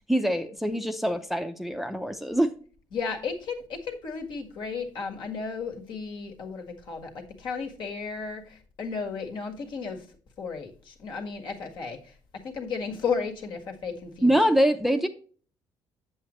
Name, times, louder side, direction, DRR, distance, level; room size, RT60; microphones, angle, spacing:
voice 1, 0.1-2.5 14.2-15.1, equal, ahead, 6 dB, 0.6 m, -24 dB
voice 2, 2.9-10.1 10.4-12.2 12.4-14.4, left 5 dB, 60° left, 3 dB, 1.8 m, -34 dB
7.7 x 7.6 x 3.1 m, 0.41 s
cardioid pair, 120°, 9 cm